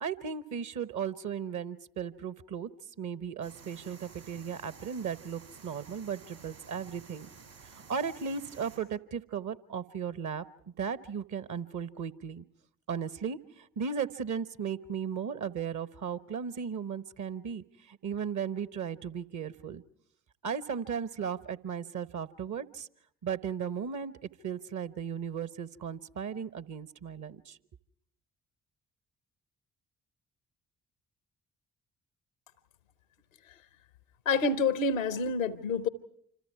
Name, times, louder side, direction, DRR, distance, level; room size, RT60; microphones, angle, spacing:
voice 1, 0.0-2.7 3.0-7.3 7.7-10.4 10.8-12.4 12.9-19.8 20.4-22.9 23.2-24.1 24.4-27.6, right 7 dB, 50° right, 16 dB, 1.0 m, -36 dB
sound 1, 3.4-8.8, right 5 dB, 85° right, 6.3 m, -52 dB
voice 2, 34.3-35.9, left 4 dB, 85° left, 15 dB, 0.8 m, -27 dB
27.5 x 26.5 x 4.7 m, 0.67 s
figure-of-eight pair, 40°, 39 cm